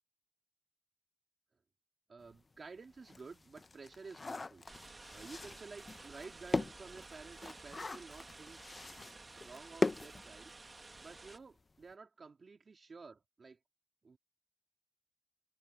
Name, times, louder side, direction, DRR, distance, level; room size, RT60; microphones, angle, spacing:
voice 1, 2.1-4.7 5.1-8.6 9.4-13.6 14.0-14.2, right 4 dB, 65° right, 3.7 m, -52 dB
sound 1, 2.3-2.4 2.8-10.9 11.2-11.3 11.6-11.8, left 3 dB, 45° left, 0.7 m, -40 dB
sound 2, 4.7-11.4, right 3 dB, 40° right, 1.8 m, -53 dB
wide cardioid pair, 95°, 0 cm